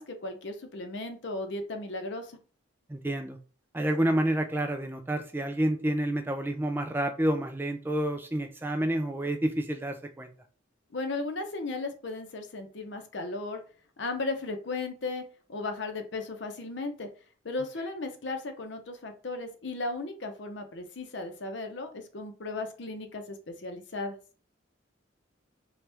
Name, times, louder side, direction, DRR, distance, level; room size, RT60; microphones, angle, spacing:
voice 1, 0.0-2.4 10.9-13.6 14.0-15.2 15.5-17.1 17.4-24.2, left 3 dB, 60° left, 0.7 m, -36 dB
voice 2, 2.9-3.4 3.7-10.3, right 1 dB, 10° right, 0.3 m, -29 dB
4.3 x 2.3 x 3.4 m
head